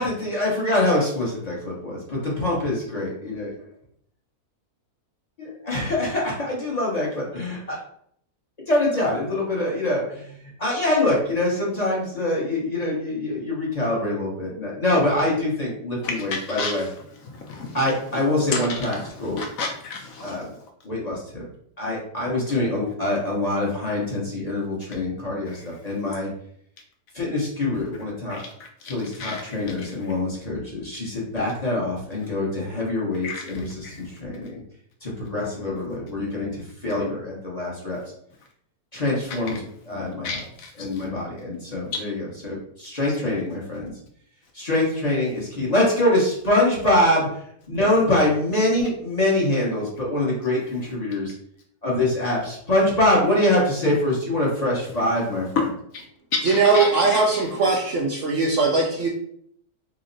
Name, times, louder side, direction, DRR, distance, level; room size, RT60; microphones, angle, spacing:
voice 1, 0.0-3.5 5.4-7.8 8.7-10.3 10.6-16.8 17.7-19.4 20.2-20.5 20.8-21.5 21.8-26.3 27.1-28.4 28.9-34.5 35.0-38.0 38.9-39.6 39.9-40.4 40.8-43.9 44.5-47.3 47.7-51.3 51.8-55.5, left 1 dB, 35° left, -4 dB, 0.7 m, -24 dB
voice 2, 16.0-18.0 18.5-20.6 25.5-25.8 28.3-30.1 33.2-34.2 39.3-39.4 40.2-41.0 41.9-42.0 50.7-50.8 55.5-55.7 55.9-56.0 56.3-57.5, left 4 dB, 70° left, 2 dB, 0.9 m, -32 dB
voice 3, 56.5-59.1, right 3 dB, 70° right, -1 dB, 0.7 m, -20 dB
3.0 x 2.0 x 3.8 m, 0.67 s
omnidirectional pair, 1.7 m